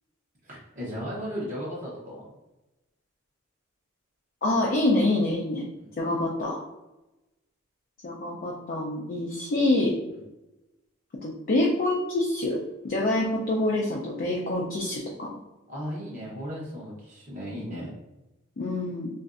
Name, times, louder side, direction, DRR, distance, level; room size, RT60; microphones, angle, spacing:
voice 1, 0.4-2.2 5.7-5.9 10.1-10.2 15.7-18.0, equal, 40° right, -6 dB, 0.8 m, -36 dB
voice 2, 4.4-5.6 6.0-6.6 8.0-10.0 11.2-15.4 18.6-19.1, left 2 dB, 45° left, -2 dB, 0.5 m, -26 dB
3.1 x 2.5 x 2.4 m, 1.0 s
head